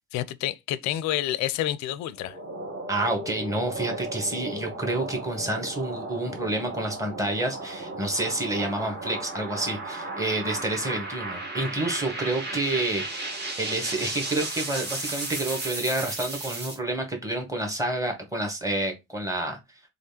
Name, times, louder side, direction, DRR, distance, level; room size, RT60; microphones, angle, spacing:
voice 1, 0.1-2.4, left 13 dB, 50° left, 0.4 m, -28 dB
sound 1, 2.2-16.8, right 2 dB, 30° right, 1.2 m, -35 dB
voice 2, 2.9-13.3 13.6-19.6, right 2 dB, 10° right, 1.3 m, -29 dB
3.2 x 2.5 x 2.8 m
figure-of-eight pair, 50°, 37 cm